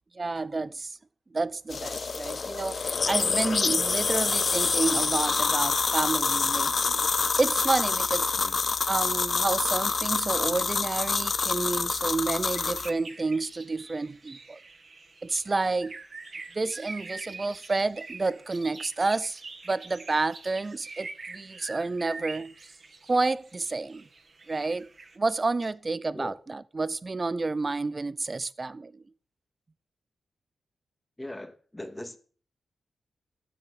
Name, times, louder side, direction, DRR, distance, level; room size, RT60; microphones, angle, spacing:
voice 1, 0.1-1.0 1.3-7.1 7.4-8.3 8.9-14.6 15.2-16.0 16.5-22.5 23.1-24.1 24.5-24.9 25.2-29.0, right 3 dB, 35° right, 0.7 m, -30 dB
sound 1, 1.7-12.9, left 4 dB, 50° left, 0.8 m, -27 dB
sound 2, 12.5-25.2, right 3 dB, 50° right, 1.9 m, -45 dB
voice 2, 31.2-32.2, left 1 dB, 15° left, 2.0 m, -40 dB
12.5 x 7.4 x 7.6 m
cardioid pair, 70°, 0 cm